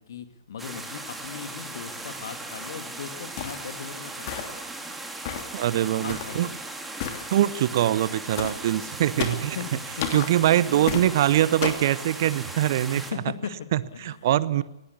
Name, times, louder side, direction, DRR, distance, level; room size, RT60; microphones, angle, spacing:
voice 1, 0.0-4.7 6.0-6.5 9.5-10.1 10.6-11.4 12.9-14.6, left 7 dB, 50° left, 9 dB, 2.4 m, -39 dB
sound 1, 0.6-13.1, right 2 dB, 5° right, 2.6 m, -38 dB
sound 2, 3.4-3.7 4.3-4.7 5.3-5.6 6.1-6.4 7.0-7.3 8.4-8.6 9.2-9.5 10.0-10.3 10.9-11.1 11.6-11.9, left 8 dB, 35° left, 2.8 m, -32 dB
voice 2, 5.5-6.5 7.3-9.6 10.1-13.0 13.7-14.6, right 12 dB, 40° right, 19 dB, 0.8 m, -23 dB
19.5 x 17.5 x 8.4 m, 0.91 s
figure-of-eight pair, 120°, 2 cm